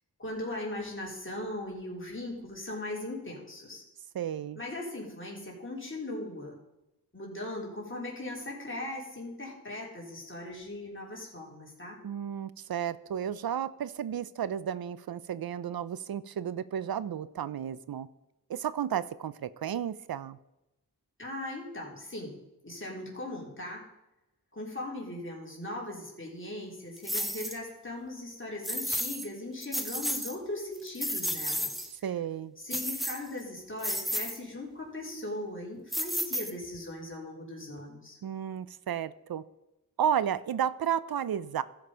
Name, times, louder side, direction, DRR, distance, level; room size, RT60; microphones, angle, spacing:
voice 1, 0.2-3.8 4.6-6.6 7.1-12.0 21.2-22.4 22.6-23.8 24.5-31.7 32.6-38.2, left 1 dB, 30° left, -3 dB, 3.6 m, -39 dB
voice 2, 4.1-4.6 12.0-18.1 18.5-20.4 31.8-32.5 38.2-39.4 40.0-41.6, right 9 dB, 70° right, 17 dB, 0.6 m, -33 dB
sound 1, 27.0-27.6 28.6-29.3 29.6-30.3 30.7-31.9 32.7-33.4 33.8-34.4 35.9-36.8, equal, ahead, 1.0 m, -32 dB
14.5 x 5.3 x 5.1 m, 0.95 s
cardioid pair, 55°, 37 cm